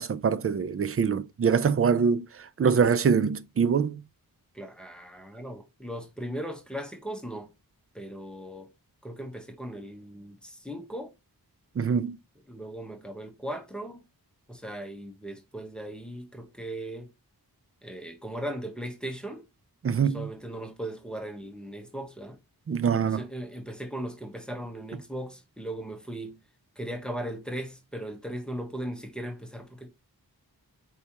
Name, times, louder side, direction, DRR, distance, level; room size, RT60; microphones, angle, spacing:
voice 1, 0.0-2.3 2.6-4.0 11.8-12.2 19.8-20.3 22.7-23.2, right 6 dB, 40° right, 0.4 m, -24 dB
voice 2, 4.5-7.5 7.9-8.7 9.0-11.1 12.5-14.0 14.5-17.1 17.8-19.5 20.0-22.4 23.0-26.4 26.8-29.9, right 1 dB, ahead, 1.1 m, -38 dB
4.6 x 3.3 x 2.8 m
wide cardioid pair, 55°, 37 cm